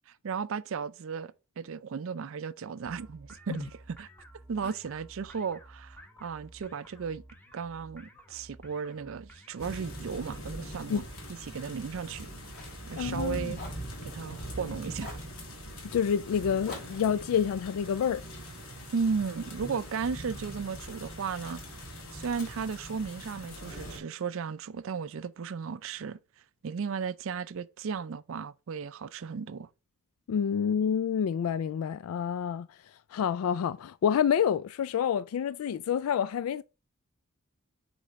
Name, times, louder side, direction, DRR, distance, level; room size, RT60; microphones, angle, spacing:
voice 1, 0.1-4.1 4.5-7.2 7.5-11.0 11.5-12.3 12.9-13.6 14.0-15.2 18.9-21.6 22.1-26.2 26.6-29.7, right 6 dB, 65° right, 0.4 m, -35 dB
sound 1, 2.8-10.0, right 1 dB, 10° left, 0.9 m, -53 dB
Fire, 9.5-13.3 13.5-14.6 15.0-15.3 16.7-19.1 19.6-20.7 21.4-21.7 22.3-23.4, left 2 dB, 50° left, 3.9 m, -51 dB
sound 2, 9.6-24.0, equal, 70° left, 2.4 m, -42 dB
voice 2, 12.9-13.5 15.8-18.2 30.3-32.8 33.1-36.6, left 8 dB, 90° left, 0.3 m, -28 dB
8.4 x 3.4 x 4.0 m
head